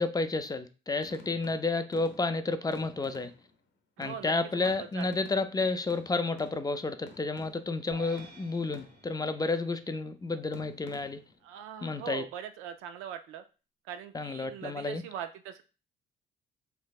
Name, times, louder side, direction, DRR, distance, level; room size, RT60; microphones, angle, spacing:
voice 1, 0.0-3.3 4.0-11.2 11.8-12.2 14.1-15.0, left 3 dB, 20° left, 10 dB, 0.4 m, -31 dB
sound 1, 1.0-3.7 4.0-7.9 8.2-9.3 10.5-11.5, left 3 dB, 65° left, 0.7 m, -52 dB
voice 2, 4.0-5.2 11.4-13.4 13.9-15.6, right 9 dB, 90° right, 9 dB, 0.4 m, -41 dB
sound 2, 7.9-10.4, right 4 dB, 55° right, 1.5 m, -53 dB
3.3 x 3.1 x 2.4 m, 0.33 s
supercardioid pair, 70°, 21 cm